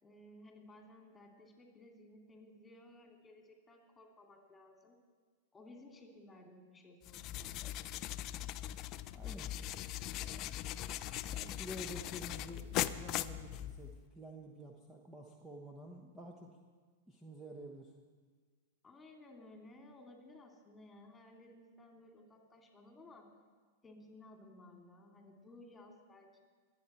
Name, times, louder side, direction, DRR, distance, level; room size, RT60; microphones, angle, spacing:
voice 1, 0.0-5.0 5.5-7.6 18.8-23.3 23.8-26.4, left 1 dB, 15° left, 2 dB, 2.7 m, -57 dB
sound 1, 7.0-14.0, left 13 dB, 40° left, 0.4 m, -40 dB
voice 2, 9.1-9.6 10.3-10.7 11.3-16.6 17.1-17.9, equal, 10° right, 0 dB, 1.2 m, -50 dB
22.0 x 8.3 x 4.4 m, 1.5 s
figure-of-eight pair, 100°, 0 cm